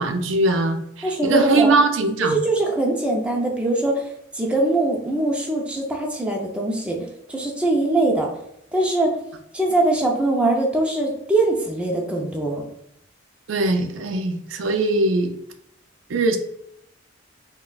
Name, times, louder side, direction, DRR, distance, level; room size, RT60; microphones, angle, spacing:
voice 1, 0.0-2.4 13.5-15.3 16.1-16.4, right 3 dB, 80° right, 5 dB, 0.4 m, -21 dB
voice 2, 1.0-1.7 2.2-4.1 4.3-7.0 7.3-8.3 8.7-9.2 9.5-12.6, right 2 dB, 5° right, -1 dB, 0.4 m, -22 dB
3.9 x 2.2 x 2.2 m, 0.74 s
head